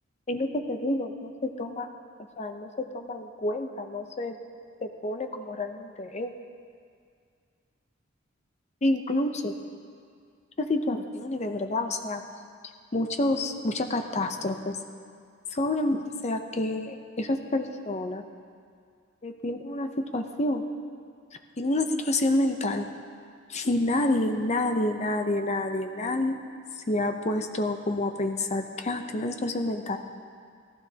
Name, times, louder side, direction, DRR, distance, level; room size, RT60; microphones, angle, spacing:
voice 1, 0.3-1.9 2.4-4.4 4.8-6.3 8.8-9.5 10.6-12.2 12.9-14.8 15.5-18.2 19.2-20.6 21.6-22.9 23.5-26.4 26.9-30.0, left 1 dB, 35° left, 6 dB, 0.7 m, -28 dB
17.5 x 15.5 x 2.8 m, 2.2 s
head